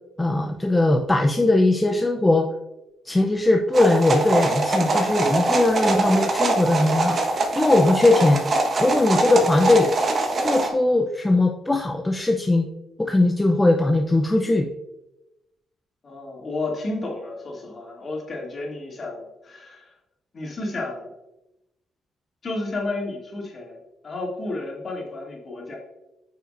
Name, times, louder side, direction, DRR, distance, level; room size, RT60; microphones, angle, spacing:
voice 1, 0.2-2.5 3.0-7.2 7.5-8.4 8.8-9.9 10.4-12.7 13.0-14.7, left 2 dB, 15° left, 3 dB, 0.5 m, -19 dB
sound 1, 3.7-10.7, right 2 dB, 45° right, 1.2 m, -23 dB
voice 2, 16.0-19.9 20.3-21.1 22.4-23.8 24.0-25.8, left 2 dB, 40° left, -2 dB, 2.5 m, -32 dB
8.5 x 5.6 x 2.6 m, 0.94 s
cardioid pair, 90°, 0 cm